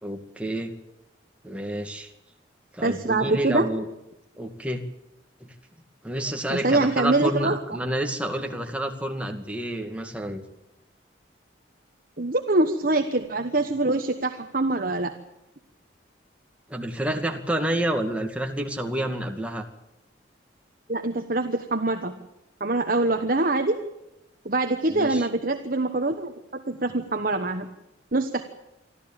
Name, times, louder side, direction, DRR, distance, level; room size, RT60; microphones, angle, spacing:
voice 1, 0.0-0.7 1.4-2.1 2.7-3.9 4.4-4.8 5.4-5.5 6.0-10.4 16.7-19.7 24.9-25.3, right 1 dB, 5° right, 3 dB, 2.2 m, -29 dB
voice 2, 2.8-3.7 6.5-7.6 12.2-15.1 20.9-22.1 22.6-23.8 24.4-27.7 28.1-28.4, right 2 dB, 45° right, 5 dB, 1.3 m, -24 dB
25.5 x 14.0 x 8.9 m, 0.91 s
head